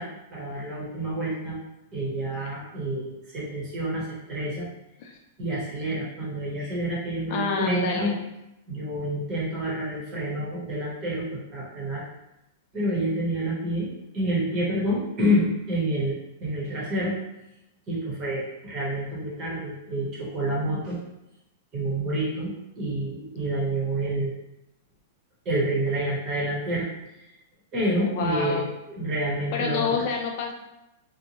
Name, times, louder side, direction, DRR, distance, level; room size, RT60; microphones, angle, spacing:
voice 1, 0.0-1.6 1.9-4.7 5.4-8.1 8.7-12.0 12.7-17.1 17.9-21.0 21.7-24.3 25.4-26.9 27.2-27.3 27.7-30.0, right 1 dB, 25° right, -6 dB, 0.9 m, -28 dB
voice 2, 7.3-8.2 28.0-28.7 29.5-30.5, left 5 dB, 45° left, 1 dB, 0.3 m, -28 dB
2.7 x 2.1 x 2.9 m, 0.93 s
supercardioid pair, 160°, 0 cm